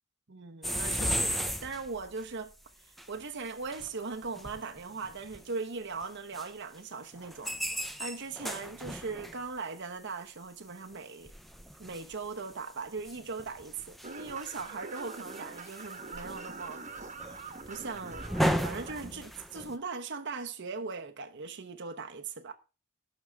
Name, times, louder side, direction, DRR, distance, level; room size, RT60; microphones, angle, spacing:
voice 1, 0.3-2.5 2.8-11.3 11.8-16.8 17.3-18.3 18.6-22.5, right 4 dB, 55° right, 1.0 m, -39 dB
sound 1, 0.6-2.2 3.0-3.1 3.5-3.9 4.2-5.4 6.0-6.1 6.3-6.5 7.2-9.4 10.9-11.0 11.2-12.5 13.0-19.8, equal, ahead, 0.8 m, -35 dB
sound 2, 14.0-19.0, right 4 dB, 35° right, 1.3 m, -44 dB
18.5 x 6.4 x 3.5 m
head